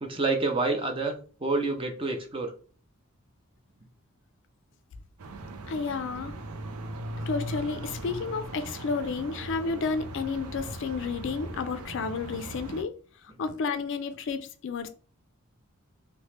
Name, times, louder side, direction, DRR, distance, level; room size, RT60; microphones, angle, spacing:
voice 1, 0.0-2.5, right 3 dB, 25° right, 0.5 m, -28 dB
sound 1, 5.2-12.8, right 1 dB, 90° right, 0.5 m, -39 dB
voice 2, 5.7-6.3 7.2-12.9 13.4-14.9, left 4 dB, 55° left, 0.4 m, -31 dB
2.9 x 2.1 x 3.1 m
head